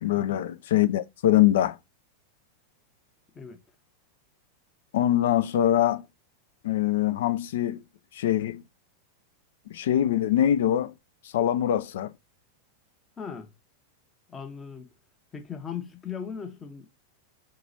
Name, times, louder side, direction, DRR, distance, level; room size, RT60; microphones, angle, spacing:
voice 1, 0.0-1.8 4.9-6.0 6.6-7.8 8.1-8.6 9.7-10.9 11.3-12.1, left 12 dB, 55° left, 0.3 m, -23 dB
voice 2, 13.2-13.5 14.3-14.9 15.3-16.9, left 7 dB, 20° left, 0.8 m, -38 dB
2.9 x 2.3 x 3.9 m
figure-of-eight pair, 90°, 0 cm